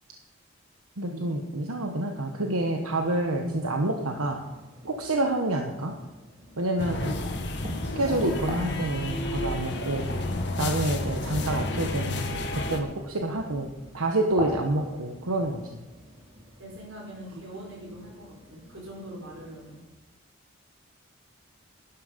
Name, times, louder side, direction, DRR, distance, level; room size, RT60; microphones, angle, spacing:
voice 1, 1.0-4.4 4.8-5.9 6.6-7.1 7.9-10.1 10.6-13.7 13.9-15.8, right 1 dB, 90° right, 3 dB, 1.2 m, -28 dB
sound 1, 2.7-19.8, equal, 25° right, 2.4 m, -45 dB
sound 2, 6.8-12.8, left 2 dB, 50° left, 1.4 m, -31 dB
voice 2, 16.6-19.8, right 1 dB, 65° right, -1 dB, 4.5 m, -42 dB
12.0 x 11.5 x 5.2 m, 1.1 s
head